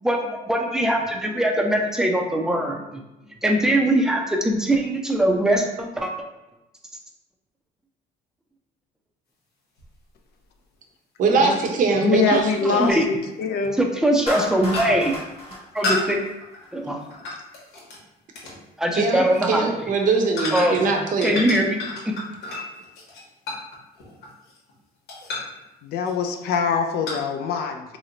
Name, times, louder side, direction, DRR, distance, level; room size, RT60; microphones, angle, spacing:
voice 1, 0.0-3.0 3.4-6.1 12.6-13.0 13.8-15.2 15.7-16.2 16.7-17.0 18.8-19.7 20.5-20.9 21.2-22.1, right 1 dB, 5° right, 1 dB, 0.4 m, -22 dB
sound 1, 9.8-9.9 12.3-12.4 13.6-13.8 14.2-14.4 14.7-15.1 15.8-18.0 18.4-18.6 19.2-19.5 20.4-20.9 21.2-24.7 25.1-25.6 26.1-26.4 27.1-27.2, left 2 dB, 90° left, 1.0 m, -31 dB
voice 2, 11.2-12.4 12.7-12.8 18.9-21.4, right 4 dB, 50° right, 2 dB, 0.6 m, -22 dB
voice 3, 11.9-13.8 25.8-28.0, left 5 dB, 70° left, 5 dB, 0.4 m, -24 dB
Clapping, 14.3-16.7, left 1 dB, 35° left, 1.0 m, -33 dB
2.9 x 2.1 x 3.7 m, 0.95 s
cardioid pair, 110°, 17 cm